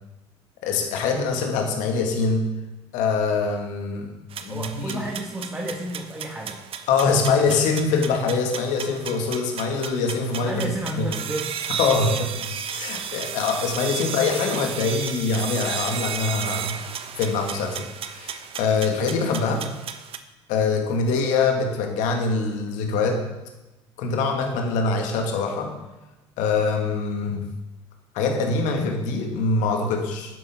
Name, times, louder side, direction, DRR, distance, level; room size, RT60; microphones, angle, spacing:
voice 1, 0.6-2.5 2.9-4.1 4.4-5.0 6.9-10.7 11.0-11.1 11.8-16.8 17.2-19.6 20.5-23.2 24.0-25.7 26.4-27.5 28.1-30.4, left 4 dB, 55° left, 3 dB, 2.2 m, -24 dB
sound 1, 4.3-20.2, right 8 dB, 40° right, 0.9 m, -34 dB
voice 2, 4.5-6.6 10.4-11.5, right 1 dB, 15° right, -1 dB, 1.9 m, -31 dB
12.0 x 10.0 x 3.9 m, 1.0 s
figure-of-eight pair, 60°, 15 cm